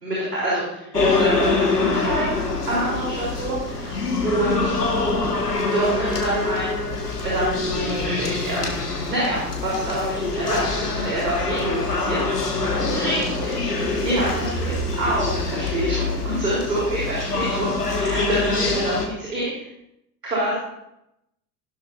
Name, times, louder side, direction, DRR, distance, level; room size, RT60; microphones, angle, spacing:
voice 1, 0.0-2.4 2.7-4.8 5.7-6.9 7.2-8.7 9.1-12.6 12.9-19.7 20.2-20.6, right 1 dB, 80° right, -7 dB, 3.9 m, -27 dB
sound 1, 0.9-19.1, left 3 dB, 80° left, 1.8 m, -25 dB
15.0 x 12.0 x 2.7 m, 0.82 s
figure-of-eight pair, 70°, 47 cm